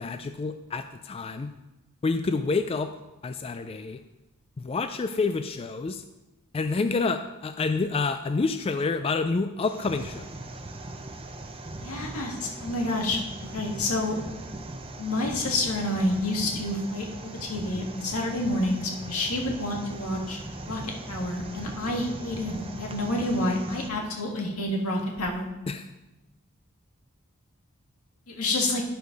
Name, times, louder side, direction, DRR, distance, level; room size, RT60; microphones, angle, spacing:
voice 1, 0.0-1.5 2.0-2.9 3.2-4.0 4.6-6.0 6.5-10.3 25.7-25.9, left 4 dB, 25° left, 9 dB, 0.3 m, -28 dB
sound 1, 9.6-23.9, right 2 dB, 25° right, 0.7 m, -39 dB
voice 2, 11.8-13.2 13.5-14.2 15.0-20.4 20.7-20.8 21.1-25.5 28.3-28.8, left 1 dB, 90° left, 1 dB, 1.8 m, -28 dB
10.0 x 4.9 x 5.2 m, 1.0 s
head